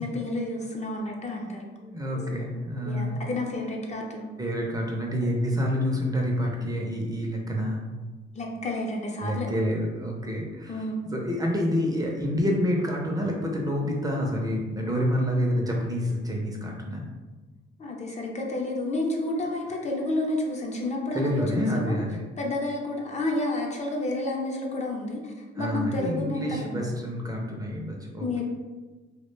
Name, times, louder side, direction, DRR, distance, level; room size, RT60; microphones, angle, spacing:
voice 1, 0.0-1.6 2.8-4.3 5.2-5.3 8.3-9.5 10.7-11.1 17.8-21.9 22.4-26.9 28.2-28.4, left 2 dB, 35° left, 0 dB, 0.5 m, -30 dB
voice 2, 1.8-3.2 4.4-7.8 9.2-17.0 21.1-22.2 25.6-28.4, equal, 20° right, -1 dB, 0.5 m, -28 dB
2.2 x 2.1 x 3.1 m, 1.3 s
cardioid pair, 90°, 20 cm